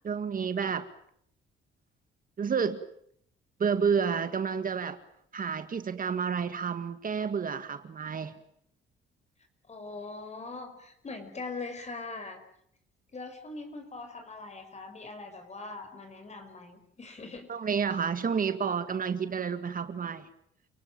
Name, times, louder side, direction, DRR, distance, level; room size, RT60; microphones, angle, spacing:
voice 1, 0.0-0.9 2.4-2.8 3.6-5.0 5.3-8.4 17.5-20.3, right 6 dB, 45° right, 2.0 m, -30 dB
voice 2, 9.7-12.4 13.1-17.5, left 3 dB, 35° left, 5.9 m, -41 dB
29.5 x 18.5 x 9.0 m
cardioid pair, 90°, 20 cm